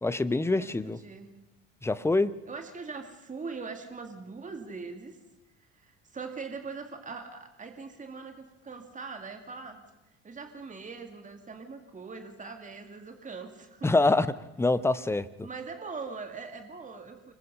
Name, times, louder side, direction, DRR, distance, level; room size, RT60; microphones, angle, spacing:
voice 1, 0.0-1.0 1.8-2.3 13.8-14.3 14.6-15.5, left 2 dB, 5° left, 16 dB, 0.9 m, -25 dB
voice 2, 0.6-1.3 2.5-5.2 5.7-9.8 10.2-14.0 15.4-17.3, right 4 dB, 20° right, 6 dB, 2.3 m, -41 dB
26.0 x 21.5 x 5.5 m, 0.91 s
figure-of-eight pair, 55°, 35 cm